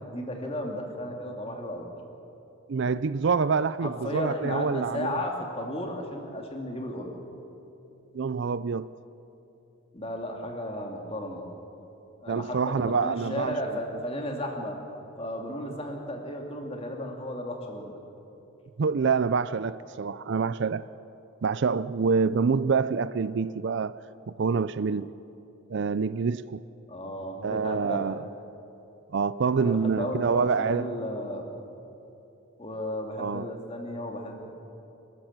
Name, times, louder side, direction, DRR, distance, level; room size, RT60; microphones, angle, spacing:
voice 1, 0.0-1.9 3.8-7.1 9.9-11.5 12.2-14.8 15.2-17.9 26.9-28.1 29.6-31.4 32.6-34.5, left 1 dB, 25° left, 2.4 m, -34 dB
voice 2, 2.7-5.2 8.1-8.9 12.3-13.6 18.8-20.8 21.4-24.0 24.3-25.1 25.7-26.6 27.4-28.2 29.1-30.9 33.2-33.5, right 5 dB, 55° right, 0.4 m, -26 dB
28.5 x 13.0 x 7.3 m
head